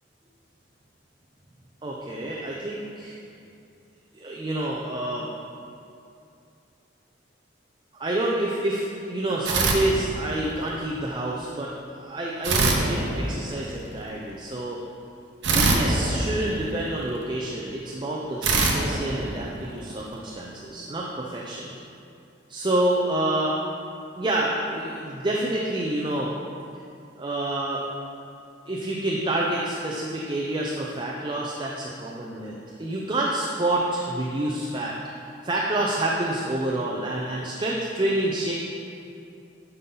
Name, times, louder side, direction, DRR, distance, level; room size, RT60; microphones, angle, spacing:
voice 1, 1.8-3.2 4.1-5.3 7.9-11.7 12.0-14.8 15.5-21.7 22.5-23.6 24.2-26.3 27.2-27.8 28.7-32.5 32.8-35.0 35.4-38.5, right 1 dB, 25° right, -3 dB, 0.6 m, -28 dB
sound 1, 9.4-10.6 12.4-13.8 15.4-17.1 18.4-20.0, right 2 dB, 70° right, 0.9 m, -24 dB
9.5 x 5.6 x 3.9 m, 2.6 s
head